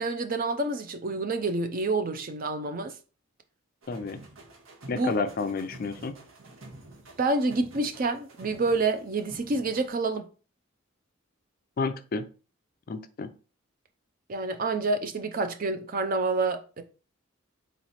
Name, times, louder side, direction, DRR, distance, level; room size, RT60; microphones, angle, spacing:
voice 1, 0.0-2.9 4.9-5.1 7.2-10.3 14.3-16.8, right 3 dB, 45° right, 0.5 m, -28 dB
sound 1, 3.8-9.9, right 2 dB, 85° right, 1.2 m, -49 dB
voice 2, 3.9-4.2 4.9-6.1 11.8-12.2 12.9-13.3, left 4 dB, 45° left, 0.4 m, -30 dB
4.0 x 3.1 x 4.1 m
head